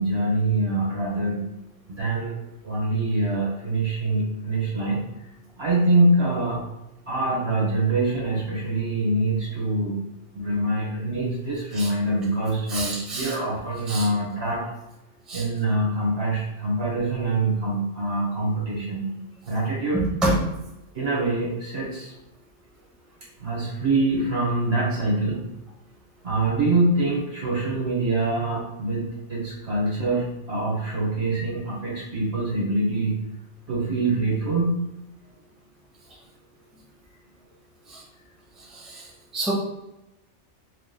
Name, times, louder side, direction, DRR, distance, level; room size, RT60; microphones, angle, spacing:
voice 1, 0.0-1.4 1.9-2.3 2.6-5.0 5.6-6.6 7.1-10.0 10.3-14.7 15.3-19.0 19.5-20.1 20.9-22.1 23.4-25.4 26.2-33.2 33.7-34.8, right 2 dB, 60° right, -5 dB, 1.7 m, -24 dB
voice 2, 12.7-13.3 13.9-14.1 15.3-15.4 19.9-20.3 37.9-38.0 38.8-39.0 39.3-39.5, right 2 dB, ahead, -4 dB, 0.8 m, -26 dB
4.4 x 3.5 x 2.3 m, 0.92 s
omnidirectional pair, 1.3 m